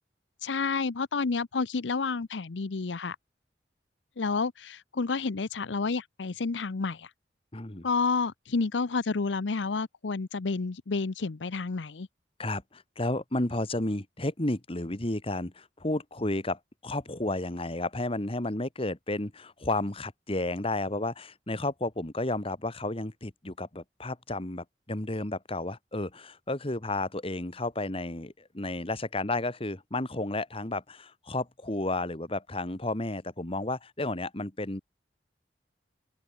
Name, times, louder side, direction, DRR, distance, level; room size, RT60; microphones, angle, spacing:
voice 1, 0.4-3.2 4.2-7.1 7.8-12.1, left 4 dB, 85° left, 0.7 m, -30 dB
voice 2, 7.5-7.9 12.4-34.8, left 2 dB, 30° left, 1.9 m, -32 dB
head